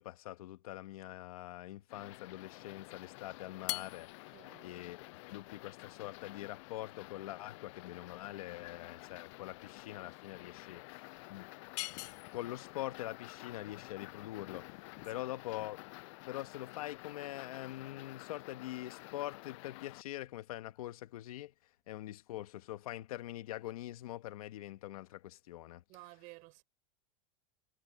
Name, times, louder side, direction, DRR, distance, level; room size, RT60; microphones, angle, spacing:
voice 1, 0.0-4.1 4.6-5.0 5.3-10.8 11.3-11.5 12.3-14.8 15.0-15.9 16.3-21.5 21.9-25.8, left 15 dB, 85° left, 1.4 m, -44 dB
sound 1, 1.9-20.0, left 25 dB, 60° left, 7.6 m, -51 dB
sound 2, 3.6-16.0, left 19 dB, 45° left, 1.6 m, -48 dB
voice 2, 4.3-4.7 15.1-15.3 25.9-26.6, right 24 dB, 45° right, 5.8 m, -54 dB
supercardioid pair, 160°, 18 cm